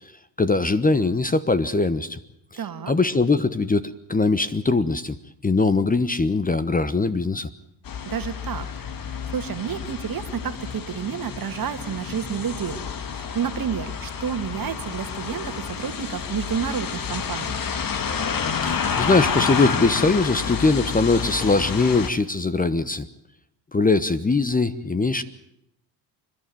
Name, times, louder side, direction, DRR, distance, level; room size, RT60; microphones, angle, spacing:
voice 1, 0.4-2.2 2.9-5.2 5.4-7.5 18.6-23.1 23.7-25.2, left 3 dB, 20° left, 14 dB, 1.1 m, -21 dB
voice 2, 2.6-2.9 8.1-8.7 9.1-12.8 13.1-17.6, right 8 dB, 45° right, 9 dB, 1.9 m, -30 dB
sound 1, 7.9-22.1, left 6 dB, 45° left, 1.9 m, -29 dB
29.0 x 11.5 x 9.2 m, 0.80 s
hypercardioid pair, 55°, 47 cm